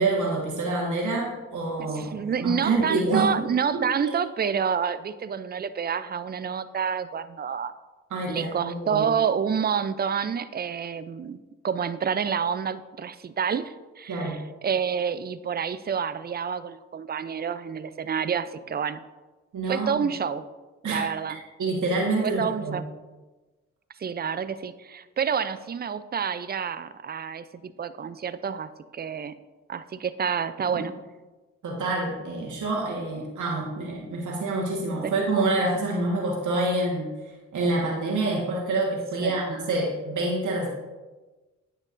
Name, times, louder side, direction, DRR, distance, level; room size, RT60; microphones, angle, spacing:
voice 1, 0.0-3.5 3.7-3.9 8.1-9.0 14.1-14.4 19.5-20.0 20.8-21.1 21.6-22.8 30.7-30.8 31.6-37.1 37.5-40.7, right 2 dB, 60° right, -2 dB, 1.5 m, -27 dB
voice 2, 1.8-7.7 8.3-11.4 11.6-19.0 19.6-20.4 20.8-21.4 22.2-22.8 24.0-29.3 29.7-30.9 35.0-35.1 39.2-39.4, right 7 dB, 30° right, 14 dB, 0.5 m, -28 dB
9.5 x 6.4 x 2.6 m, 1.2 s
hypercardioid pair, 45°, 33 cm